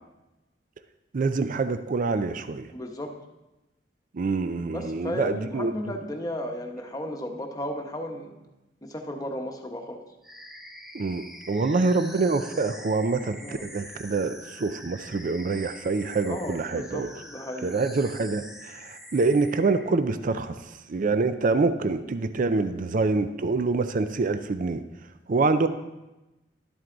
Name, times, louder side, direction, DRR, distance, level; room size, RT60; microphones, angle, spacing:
voice 1, 1.1-2.7 4.1-5.9 10.9-17.1 17.6-20.5 20.9-24.8 25.3-25.7, right 3 dB, 45° right, 11 dB, 0.4 m, -26 dB
voice 2, 2.7-3.1 4.7-8.3 8.8-10.0 13.4-13.6 16.2-17.7, equal, 20° left, 2 dB, 1.0 m, -34 dB
sound 1, 10.2-19.9, equal, ahead, 0.7 m, -45 dB
12.0 x 7.9 x 3.9 m, 1.0 s
head